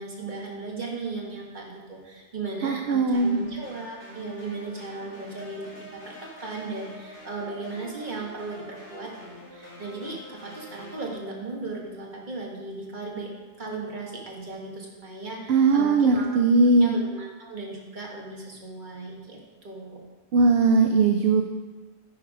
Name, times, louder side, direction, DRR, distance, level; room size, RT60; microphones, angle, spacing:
voice 1, 0.0-5.7 5.9-6.1 6.4-13.3 13.6-16.3 16.8-20.0, right 3 dB, 45° right, -2 dB, 1.7 m, -36 dB
voice 2, 2.6-3.4 15.5-17.0 20.3-21.4, right 3 dB, 65° right, 5 dB, 0.8 m, -19 dB
sound 1, 3.1-11.1, left 1 dB, 55° left, 2.9 m, -45 dB
9.9 x 4.6 x 4.8 m, 1.3 s
omnidirectional pair, 1.2 m